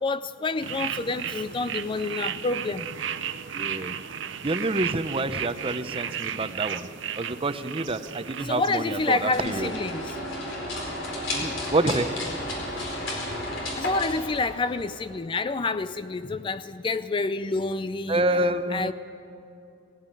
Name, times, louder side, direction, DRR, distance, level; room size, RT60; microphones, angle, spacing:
voice 1, 0.0-2.9 8.4-10.1 13.8-18.2 18.7-18.9, left 3 dB, 25° left, 13 dB, 0.4 m, -28 dB
sound 1, 0.6-9.5, right 8 dB, 70° right, 0.7 m, -34 dB
voice 2, 3.5-4.0 4.4-6.9 7.2-9.7 11.3-12.1 18.1-18.9, right 2 dB, 30° right, 11 dB, 0.7 m, -27 dB
sound 2, 8.9-15.1, left 1 dB, 80° left, 4.5 m, -33 dB
18.0 x 15.5 x 9.2 m, 2.8 s
head